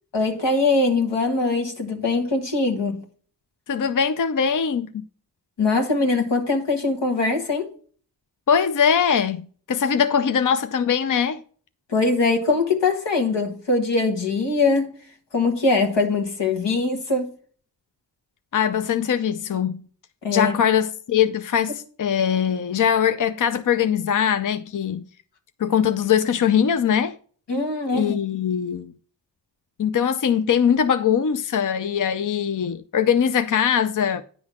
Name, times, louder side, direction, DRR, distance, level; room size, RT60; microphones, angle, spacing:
voice 1, 0.1-3.0 5.6-7.7 11.9-15.0 15.3-17.3 20.2-20.6 27.5-28.2, left 3 dB, 80° left, 1.6 m, -22 dB
voice 2, 3.7-5.0 8.5-11.4 18.5-19.9 20.3-25.1 25.6-27.2 27.9-28.9 29.8-34.2, left 8 dB, 50° left, 0.6 m, -21 dB
9.7 x 3.9 x 6.1 m
cardioid pair, 40°, 42 cm